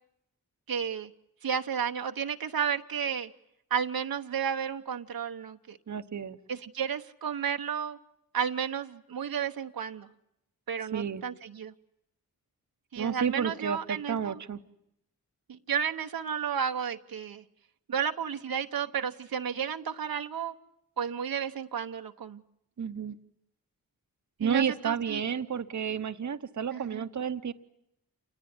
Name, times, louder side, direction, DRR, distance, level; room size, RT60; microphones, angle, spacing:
voice 1, 0.7-1.1 1.4-3.3 3.7-5.8 6.5-8.0 8.3-10.1 10.7-11.7 12.9-14.4 15.5-17.4 17.9-20.5 21.0-22.4 24.4-25.2 26.7-27.0, right 7 dB, 75° right, 6 dB, 1.0 m, -32 dB
voice 2, 5.9-6.4 10.9-11.2 13.0-14.6 22.8-23.2 24.4-27.5, right 7 dB, 55° right, 10 dB, 1.0 m, -31 dB
27.5 x 20.5 x 9.6 m, 0.82 s
cardioid pair, 55°, 35 cm